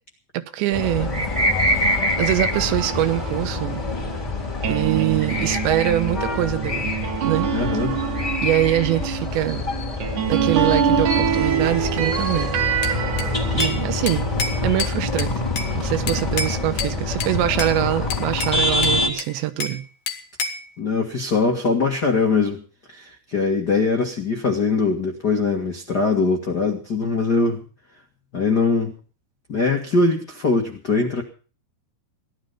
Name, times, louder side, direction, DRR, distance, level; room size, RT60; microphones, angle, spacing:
voice 1, 0.3-1.3 2.2-3.8 4.7-6.9 7.2-7.5 8.4-9.7 10.3-12.6 13.5-14.3 14.6-19.8, right 14 dB, 80° right, 11 dB, 3.3 m, -24 dB
sound 1, 0.7-19.1, left 2 dB, 10° left, 2.8 m, -25 dB
sound 2, 2.5-15.1 15.5-18.5, right 8 dB, 60° right, 2.3 m, -27 dB
voice 2, 7.5-8.0 20.8-22.6 22.9-27.6 28.3-28.9 29.5-31.2, left 4 dB, 70° left, 2 dB, 0.9 m, -22 dB
Bell / Glass, 12.8-13.8 14.1-15.7 16.1-16.9 17.2-17.8 18.1-19.8 20.1-20.7, left 4 dB, 50° left, 2.1 m, -29 dB
17.5 x 12.0 x 5.7 m, 0.38 s
omnidirectional pair, 5.1 m